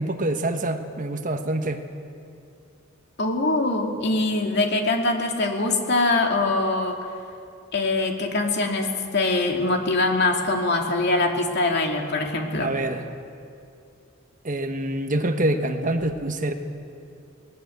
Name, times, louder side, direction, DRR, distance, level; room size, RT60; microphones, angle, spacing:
voice 1, 0.0-1.8 12.6-13.0 14.4-16.5, right 1 dB, 40° right, 7 dB, 1.2 m, -26 dB
voice 2, 3.2-7.0 7.7-12.7, left 2 dB, 55° left, 2 dB, 2.6 m, -23 dB
19.5 x 19.0 x 7.9 m, 2.5 s
head